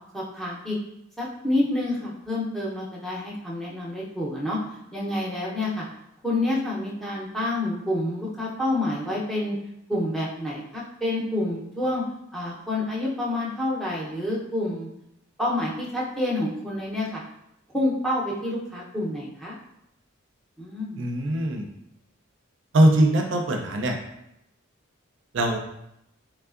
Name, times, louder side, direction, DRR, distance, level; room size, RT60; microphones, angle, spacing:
voice 1, 0.1-0.8 1.2-4.6 4.9-5.8 6.2-9.6 9.9-12.0 12.3-14.9 15.4-17.2 17.7-19.5 20.6-21.0, left 1 dB, ahead, -6 dB, 0.6 m, -28 dB
voice 2, 21.0-21.6 22.7-24.0 25.3-25.6, right 1 dB, 60° right, 2 dB, 0.4 m, -21 dB
3.4 x 3.1 x 2.4 m, 0.82 s
head